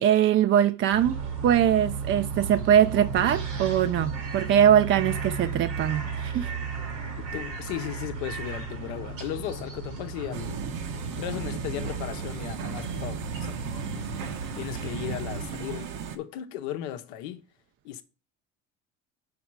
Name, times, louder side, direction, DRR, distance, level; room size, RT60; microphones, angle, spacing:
voice 1, 0.0-6.5, right 10 dB, 35° right, 0.4 m, -22 dB
sound 1, 0.9-15.5, right 5 dB, 90° right, 2.2 m, -35 dB
voice 2, 7.2-10.6 10.9-13.6 14.5-17.4 17.8-18.0, left 11 dB, 80° left, 0.9 m, -36 dB
sound 2, 10.3-16.2, right 7 dB, 70° right, 1.0 m, -36 dB
6.1 x 5.1 x 4.6 m
supercardioid pair, 85°, 36 cm